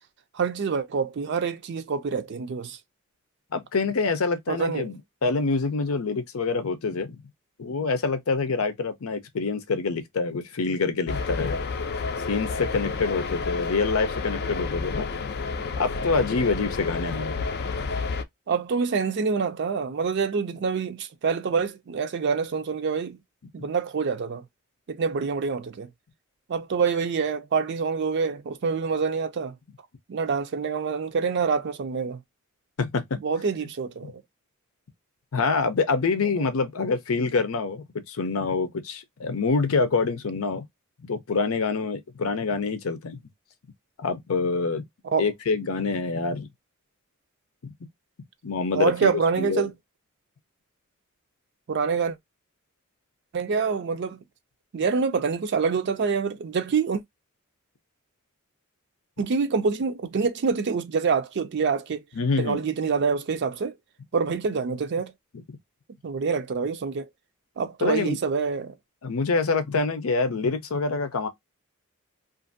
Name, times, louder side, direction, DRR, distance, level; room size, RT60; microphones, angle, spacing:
voice 1, 0.3-2.8 4.5-4.9 18.5-23.2 23.5-24.4 24.9-25.9 26.5-29.5 30.1-32.2 33.2-34.2 36.4-36.5 45.0-45.3 48.7-49.7 51.7-52.2 53.3-54.2 54.7-57.0 59.2-62.0 62.4-63.8 64.1-65.1 66.0-67.1 67.6-68.8, right 5 dB, 55° right, 0.4 m, -26 dB
voice 2, 3.5-7.2 7.6-11.6 12.3-15.1 15.8-17.4 32.8-33.2 35.3-40.6 41.1-43.2 44.0-44.8 45.2-46.5 48.4-49.1 49.4-49.7 62.2-62.6 67.8-68.2 69.0-71.3, left 4 dB, 90° left, 0.6 m, -26 dB
sound 1, 11.1-18.2, left 4 dB, 50° left, 0.4 m, -30 dB
2.5 x 2.5 x 2.5 m
head